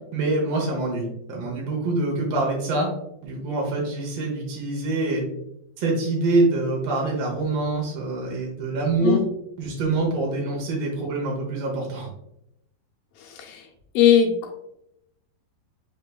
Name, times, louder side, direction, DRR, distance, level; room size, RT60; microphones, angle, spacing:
voice 1, 0.1-2.9 3.2-5.2 5.8-9.2 9.6-12.1, right 2 dB, 90° right, -2 dB, 1.4 m, -25 dB
voice 2, 13.2-13.7 13.9-14.5, left 9 dB, 80° left, 0 dB, 2.2 m, -20 dB
5.5 x 3.3 x 2.2 m, 0.80 s
omnidirectional pair, 4.3 m